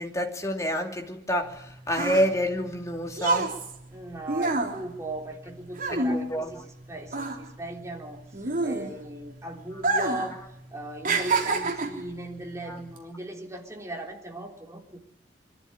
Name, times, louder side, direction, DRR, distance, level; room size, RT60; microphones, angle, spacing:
voice 1, 0.0-3.5 5.9-6.6 12.7-12.8, equal, 15° left, 3 dB, 2.7 m, -28 dB
sound 1, 1.5-6.8 7.1-9.2 9.7-10.3 10.6-12.1 12.8-13.0, right 3 dB, 45° right, 3.5 m, -28 dB
voice 2, 3.9-6.6 6.9-8.2 8.6-10.4 10.7-15.0, right 1 dB, 15° right, 1 dB, 3.6 m, -38 dB
23.5 x 14.0 x 10.0 m, 0.79 s
head